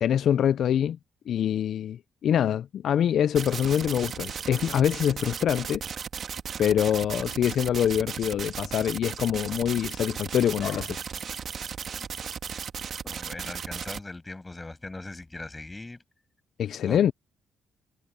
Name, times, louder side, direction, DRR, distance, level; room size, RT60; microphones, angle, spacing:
voice 1, 0.0-1.0 1.3-5.8 6.6-11.0 16.6-17.1, left 9 dB, 65° left, 0.4 m, -25 dB
sound 1, 3.4-14.0, right 7 dB, 55° right, 1.5 m, -36 dB
voice 2, 13.0-16.0 16.9-17.0, left 2 dB, 15° left, 7.2 m, -40 dB
cardioid pair, 90°, 0 cm